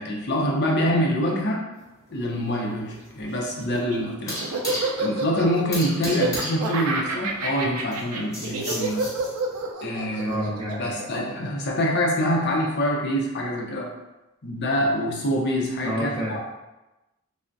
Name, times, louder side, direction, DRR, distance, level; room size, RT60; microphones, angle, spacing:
voice 1, 0.0-1.6 2.1-4.4 5.0-9.1 9.8-10.5 10.8-13.9 14.4-16.4, equal, 50° left, -1 dB, 0.5 m, -25 dB
sound 1, 1.8-9.7, equal, 15° left, 0.9 m, -36 dB
Laughter, 3.6-12.0, right 3 dB, 80° right, 0.4 m, -29 dB
voice 2, 10.3-11.0 15.8-16.4, equal, 20° right, -7 dB, 0.7 m, -29 dB
3.4 x 2.1 x 2.5 m, 1.0 s
head